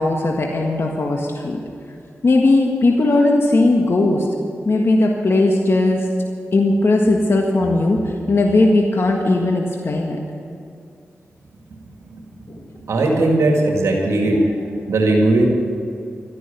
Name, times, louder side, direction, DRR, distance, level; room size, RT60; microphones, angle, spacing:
voice 1, 0.0-1.6 2.2-4.3 4.6-6.1 6.5-10.2 12.5-12.6, left 2 dB, 55° left, 1 dB, 1.6 m, -17 dB
voice 2, 12.8-14.5 14.9-15.4, right 2 dB, 90° right, 0 dB, 2.2 m, -17 dB
13.0 x 11.0 x 9.0 m, 2.4 s
cardioid pair, 50°, 5 cm